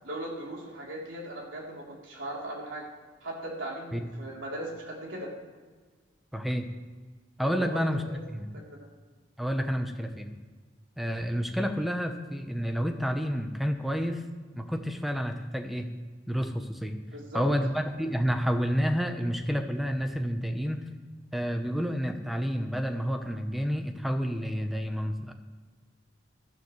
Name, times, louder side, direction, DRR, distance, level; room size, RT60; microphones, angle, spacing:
voice 1, 0.0-2.8 3.2-5.3 7.4-8.2 8.5-8.8 17.1-17.4, right 1 dB, 80° right, -3 dB, 3.6 m, -38 dB
voice 2, 6.3-6.7 7.4-8.0 8.3-8.5 9.4-10.3 11.0-14.2 14.5-15.9 16.3-17.0 17.3-20.8 21.3-25.3, equal, ahead, 6 dB, 0.9 m, -29 dB
17.5 x 12.5 x 3.3 m, 1.4 s
head